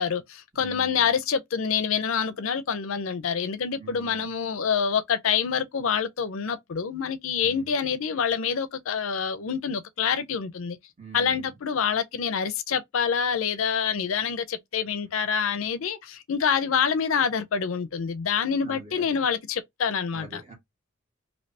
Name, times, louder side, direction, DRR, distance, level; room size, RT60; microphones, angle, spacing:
voice 1, 0.0-10.8 11.1-20.4, left 7 dB, 70° left, 0.5 m, -26 dB
voice 2, 0.6-1.1 3.8-4.3 7.4-7.7 11.0-11.5 18.6-19.2 20.1-20.5, right 3 dB, 30° right, 1.6 m, -45 dB
3.2 x 2.7 x 2.7 m
head